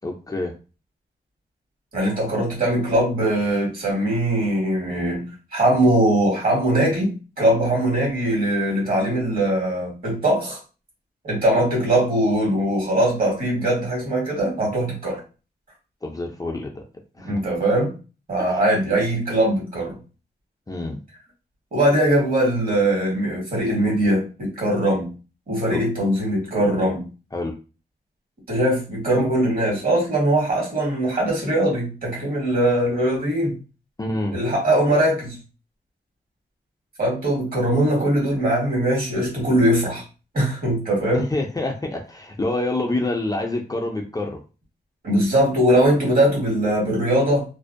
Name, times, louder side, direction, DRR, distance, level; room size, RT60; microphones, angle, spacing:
voice 1, 0.0-0.5 16.0-16.8 17.2-17.4 18.5-18.6 20.7-21.0 25.7-25.8 27.3-27.5 34.0-34.4 41.1-44.4, left 2 dB, 20° left, 1 dB, 0.4 m, -27 dB
voice 2, 1.9-10.6 11.2-15.2 17.2-18.0 18.3-20.0 21.7-25.1 25.5-27.1 28.5-33.6 34.3-35.4 37.0-40.0 40.3-41.2 45.0-47.4, right 1 dB, 55° right, -2 dB, 1.4 m, -21 dB
2.5 x 2.0 x 2.5 m, 0.33 s
wide cardioid pair, 100°, 18 cm